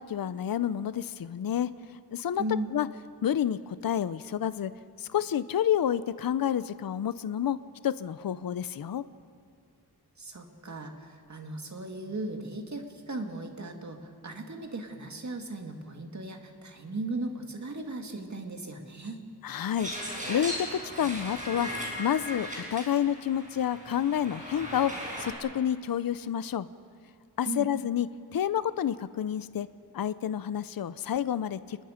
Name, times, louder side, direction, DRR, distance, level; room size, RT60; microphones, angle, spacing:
voice 1, 0.0-1.7 2.1-2.4 2.7-2.9 3.2-4.7 5.0-7.6 7.8-9.0 19.4-20.7 21.0-21.7 22.0-24.9 25.2-26.7 27.4-28.1 28.3-29.7 29.9-31.8, left 9 dB, 60° left, 15 dB, 0.6 m, -29 dB
voice 2, 2.4-2.7 10.2-19.2 27.5-27.7, right 2 dB, 45° right, 4 dB, 2.1 m, -37 dB
sound 1, 19.8-25.3, equal, 20° right, 5.5 m, -38 dB
29.5 x 20.5 x 5.1 m, 2.2 s
wide cardioid pair, 125°, 41 cm